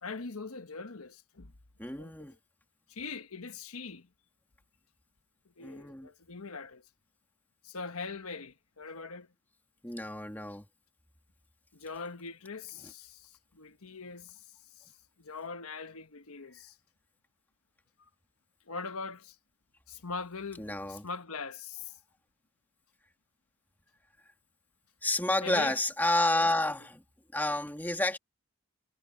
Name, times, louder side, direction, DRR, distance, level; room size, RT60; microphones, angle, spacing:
voice 1, 0.0-1.5 2.0-2.1 2.9-4.1 5.6-6.8 7.6-9.3 11.7-14.4 14.8-14.9 15.2-16.8 18.0-18.1 18.7-19.3 19.9-21.9 25.4-25.7, left 4 dB, 85° left, 1.3 m, -41 dB
voice 2, 1.8-2.3 5.6-6.1 9.8-10.6 12.8-12.9 20.6-21.1 25.0-27.0 27.3-28.2, left 1 dB, 10° left, 2.2 m, -30 dB
head